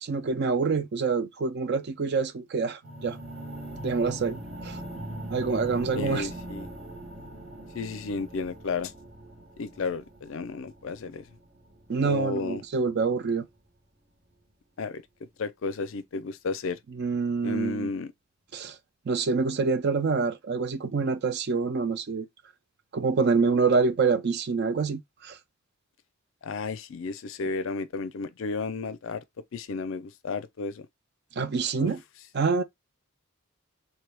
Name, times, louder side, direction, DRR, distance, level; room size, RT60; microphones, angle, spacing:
voice 1, 0.0-3.2 3.8-4.8 5.3-6.3 11.9-13.4 17.0-17.9 18.5-18.8 19.1-22.3 22.9-25.4 31.4-32.0 32.3-32.6, right 4 dB, 50° right, 0.4 m, -26 dB
sound 1, 2.8-12.8, right 1 dB, 80° right, 1.7 m, -41 dB
voice 2, 5.9-6.7 7.7-8.9 9.6-11.2 12.0-12.6 14.8-16.8 17.4-18.1 26.4-29.2 29.5-30.9 31.8-31.9, left 4 dB, 60° left, 0.4 m, -33 dB
3.1 x 2.3 x 3.3 m
head